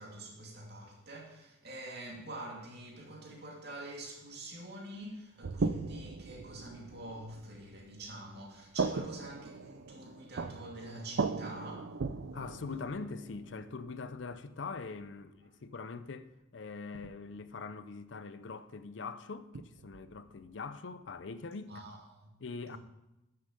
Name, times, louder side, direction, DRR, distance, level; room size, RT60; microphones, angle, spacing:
voice 1, 0.0-11.9 21.7-22.3 22.7-22.8, right 1 dB, 60° right, 2.6 m, -46 dB
sound 1, 5.4-8.5 8.8-14.9 16.9-17.3 19.5-20.6, right 4 dB, 75° right, 0.5 m, -39 dB
voice 2, 12.3-21.7 22.4-22.8, left 4 dB, 70° left, 0.6 m, -43 dB
9.7 x 6.7 x 5.2 m
head